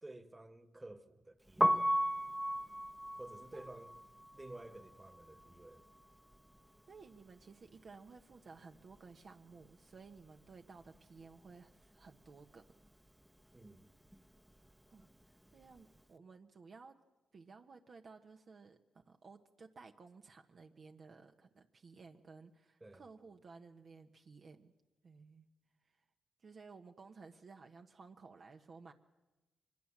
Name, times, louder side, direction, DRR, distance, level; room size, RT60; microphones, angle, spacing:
voice 1, 0.0-1.9 3.2-4.0 4.3-5.8 13.5-13.9 22.8-23.1, right 2 dB, 20° right, 1.8 m, -52 dB
Piano, 1.5-7.4 7.7-9.3 9.5-16.0, equal, 5° right, 1.1 m, -38 dB
voice 2, 6.9-12.7 14.6-17.0 17.3-24.7 25.0-25.4 25.8-26.0 26.4-28.9, right 4 dB, 55° right, 1.3 m, -56 dB
24.0 x 21.5 x 7.5 m
supercardioid pair, 55°, 0 cm